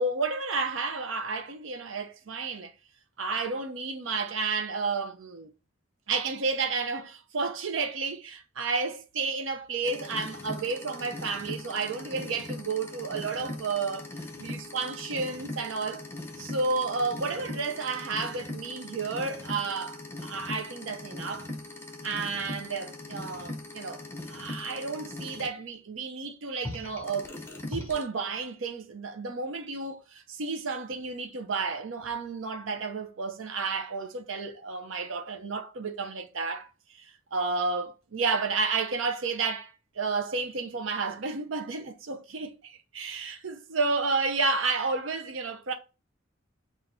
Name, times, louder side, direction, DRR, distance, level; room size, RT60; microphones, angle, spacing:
voice 1, 0.0-2.7 3.2-5.5 6.1-14.1 14.4-16.0 16.4-21.5 22.0-27.3 27.7-45.7, right 4 dB, 85° right, 0.7 m, -31 dB
sound 1, 9.8-25.5 26.6-28.0, left 2 dB, 10° left, 0.7 m, -40 dB
5.9 x 2.5 x 2.6 m
head